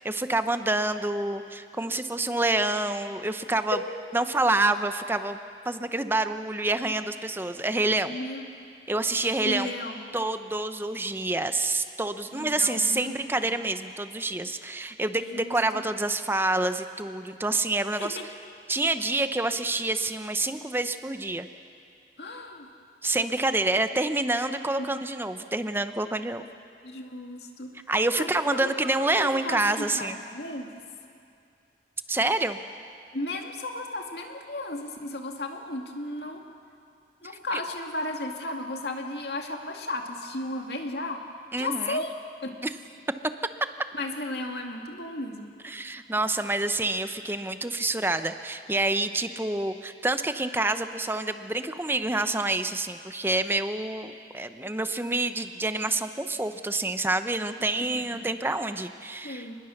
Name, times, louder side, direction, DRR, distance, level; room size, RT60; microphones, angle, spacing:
voice 1, 0.0-3.8 4.1-5.4 5.6-8.2 8.9-9.7 10.1-18.2 18.7-21.5 23.0-26.4 27.9-30.2 32.1-32.6 41.5-42.0 42.6-42.7 45.6-59.5, right 2 dB, 15° right, 9 dB, 0.8 m, -27 dB
voice 2, 8.1-8.5 9.4-10.0 12.3-13.5 15.2-15.5 18.0-18.2 22.2-22.7 24.8-24.9 26.8-27.7 28.2-30.8 33.1-36.5 37.2-41.2 41.6-42.1 42.4-42.5 43.9-45.5 57.6-57.7 57.9-58.0 59.2-59.6, left 2 dB, 65° left, 3 dB, 2.3 m, -34 dB
30.0 x 20.5 x 6.6 m, 2.4 s
head